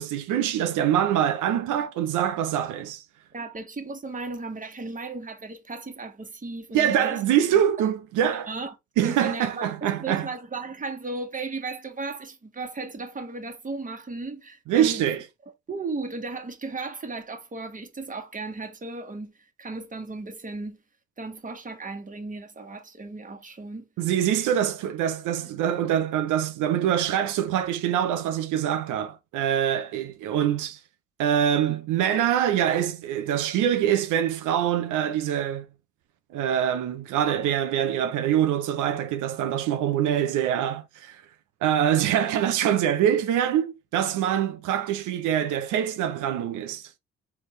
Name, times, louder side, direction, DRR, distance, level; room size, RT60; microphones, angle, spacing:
voice 1, 0.0-3.0 6.7-8.5 9.0-10.3 14.7-15.2 24.0-30.8 31.2-35.7 36.3-41.2 41.6-46.9, right 10 dB, 85° right, 0.6 m, -24 dB
voice 2, 3.3-7.2 7.8-7.9 8.5-8.7 9.0-15.0 15.7-20.8 21.2-23.9, right 3 dB, 25° right, 1.4 m, -35 dB
4.5 x 3.5 x 3.1 m
cardioid pair, 90°, 30 cm